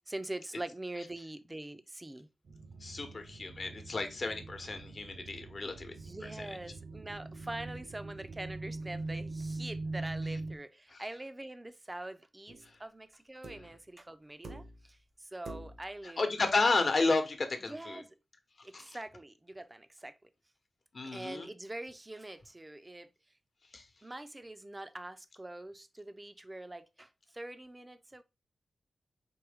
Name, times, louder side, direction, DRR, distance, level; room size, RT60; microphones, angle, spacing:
voice 1, 0.1-2.3 5.9-16.2 17.7-18.1 18.6-20.3 21.0-23.1 24.0-28.2, right 1 dB, 20° right, 0.5 m, -44 dB
sound 1, 2.5-10.6, right 2 dB, 65° right, 0.6 m, -42 dB
voice 2, 2.8-5.9 6.4-6.5 10.9-11.0 12.6-12.7 16.0-18.0 18.6-19.0 20.9-21.5 23.7-23.8, left 3 dB, 50° left, 0.9 m, -32 dB
sound 2, 12.5-12.8 13.4-13.8 14.4-15.0 15.5-16.0 17.3-17.4, right 2 dB, 80° right, 1.1 m, -47 dB
4.5 x 3.2 x 3.5 m
wide cardioid pair, 90°, 0 cm